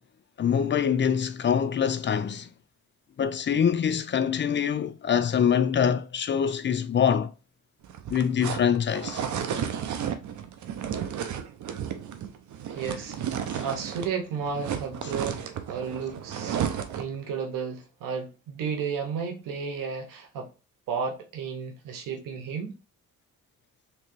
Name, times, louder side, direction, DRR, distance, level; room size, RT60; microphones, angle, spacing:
voice 1, 0.4-2.5 3.2-7.3 8.1-9.2 13.5-13.6, left 8 dB, 35° left, 0.4 m, -24 dB
sound 1, 7.8-14.2 14.4-17.2, right 8 dB, 65° right, 0.7 m, -33 dB
voice 2, 12.7-13.2 13.6-20.5 20.9-22.8, right 6 dB, 90° right, 0.9 m, -33 dB
3.3 x 2.9 x 3.0 m
cardioid pair, 85°, 32 cm